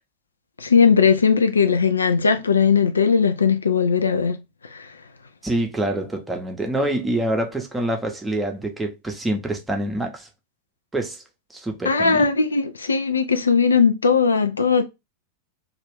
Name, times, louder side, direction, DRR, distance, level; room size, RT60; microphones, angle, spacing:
voice 1, 0.6-4.4 4.7-4.9 11.9-14.8, left 5 dB, 75° left, 0.3 m, -18 dB
voice 2, 5.4-10.3 10.9-11.2 11.5-12.3, right 1 dB, 10° right, 0.7 m, -26 dB
2.4 x 2.3 x 3.3 m
figure-of-eight pair, 90°, 0 cm